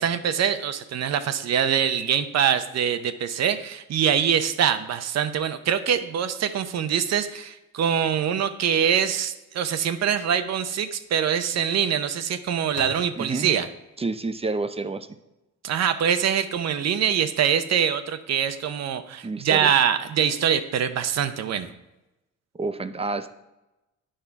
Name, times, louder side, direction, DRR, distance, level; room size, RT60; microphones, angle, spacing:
voice 1, 0.0-13.7 15.6-21.7, right 8 dB, 60° right, 10 dB, 0.7 m, -24 dB
Microwave oven, 10.0-10.3 10.6-10.7 12.7-13.7, left 3 dB, 85° left, 1.4 m, -43 dB
voice 2, 13.2-13.5 14.0-15.1 19.2-19.7 22.5-23.3, right 3 dB, 20° right, 10 dB, 0.5 m, -29 dB
8.9 x 5.6 x 4.6 m, 0.98 s
cardioid pair, 90°, 30 cm